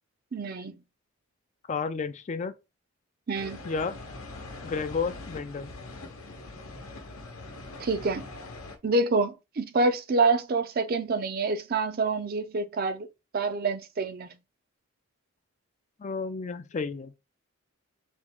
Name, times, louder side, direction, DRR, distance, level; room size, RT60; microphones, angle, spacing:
voice 1, 0.3-0.7 3.3-3.6 7.8-8.3 8.8-13.1 13.3-14.3, right 3 dB, 45° right, 0.4 m, -27 dB
voice 2, 1.7-2.5 3.6-4.0 4.6-5.7 16.0-17.2, left 5 dB, 35° left, 0.3 m, -32 dB
sound 1, 3.3-8.8, left 2 dB, 80° left, 0.9 m, -42 dB
3.6 x 3.1 x 3.5 m
head